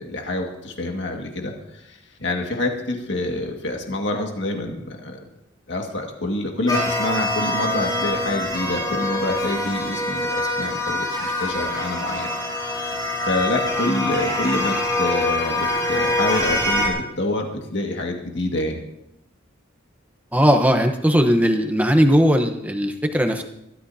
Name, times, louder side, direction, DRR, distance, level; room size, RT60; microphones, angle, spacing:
voice 1, 0.0-5.3 5.7-12.3 12.6-18.8, left 1 dB, 60° left, 2 dB, 2.0 m, -27 dB
sound 1, 6.7-16.9, left 1 dB, 20° left, 4.1 m, -24 dB
voice 2, 20.3-23.4, equal, 5° right, 5 dB, 1.1 m, -18 dB
22.5 x 12.5 x 2.8 m, 0.85 s
head